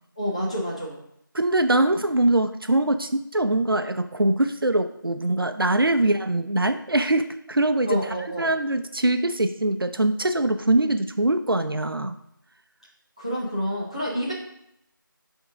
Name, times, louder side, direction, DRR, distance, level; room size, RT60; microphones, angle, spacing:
voice 1, 0.2-1.0 6.0-6.1 7.9-8.5 13.2-14.3, equal, 15° left, -6 dB, 0.8 m, -28 dB
voice 2, 1.3-8.0 8.4-12.1, right 1 dB, 85° right, 9 dB, 0.6 m, -23 dB
10.0 x 3.7 x 3.6 m, 0.78 s
figure-of-eight pair, 175°, 12 cm